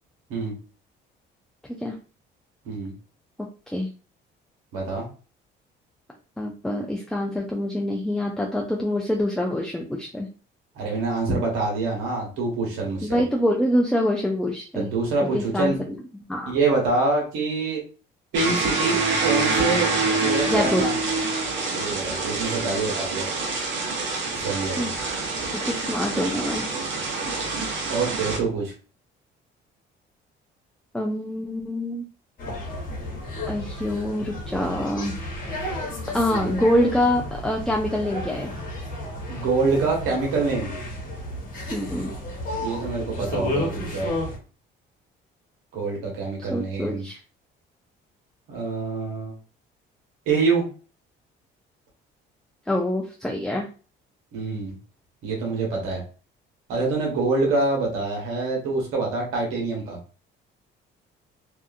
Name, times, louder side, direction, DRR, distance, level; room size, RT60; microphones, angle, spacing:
voice 1, 4.7-5.1 10.7-13.2 14.7-15.8 16.5-17.8 18.3-19.0 19.2-19.9 20.2-20.9 21.7-23.3 24.3-24.9 27.9-28.7 36.4-36.5 39.3-40.7 42.6-44.1 45.7-47.0 48.5-49.3 50.3-50.6 54.3-54.8 55.2-56.0 56.7-60.0, right 3 dB, 90° right, -1 dB, 1.1 m, -25 dB
voice 2, 6.4-10.3 13.0-14.9 15.3-16.0 16.3-16.5 20.4-20.9 24.8-24.9 25.6-26.7 30.9-32.1 33.5-35.1 36.1-38.5 41.7-42.1 46.4-47.2 52.7-53.7, left 1 dB, 5° left, 0 dB, 0.4 m, -25 dB
sound 1, 18.3-28.4, right 3 dB, 65° right, 0.8 m, -26 dB
sound 2, 32.4-44.4, left 1 dB, 40° left, 1.1 m, -32 dB
2.7 x 2.4 x 2.4 m, 0.37 s
cardioid pair, 90°, 21 cm